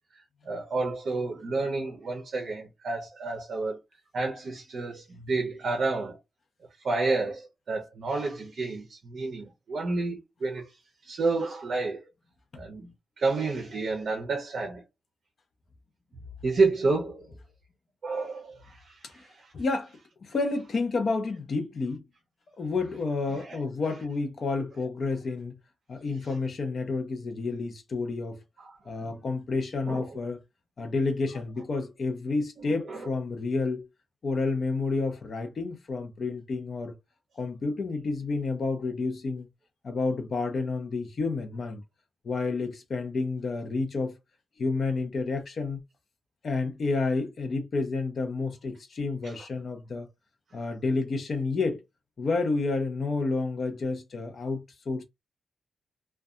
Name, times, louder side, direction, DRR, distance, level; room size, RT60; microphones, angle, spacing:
voice 1, 0.5-3.8 4.1-6.2 6.8-10.7 11.0-12.0 12.6-14.8 16.4-17.3 18.0-19.5 23.3-23.6 28.6-28.7 29.0-29.1 29.9-30.0 32.6-33.1 49.2-49.3, right 3 dB, 45° right, 0.7 m, -30 dB
voice 2, 19.5-22.0 22.6-25.6 25.9-28.4 28.8-30.4 30.8-33.9 34.2-37.0 37.3-39.5 39.8-41.8 42.2-44.2 44.6-45.8 46.4-50.1 50.5-51.8 52.2-55.0, left 3 dB, 40° left, 0.5 m, -30 dB
2.6 x 2.2 x 2.3 m
wide cardioid pair, 175°, 0 cm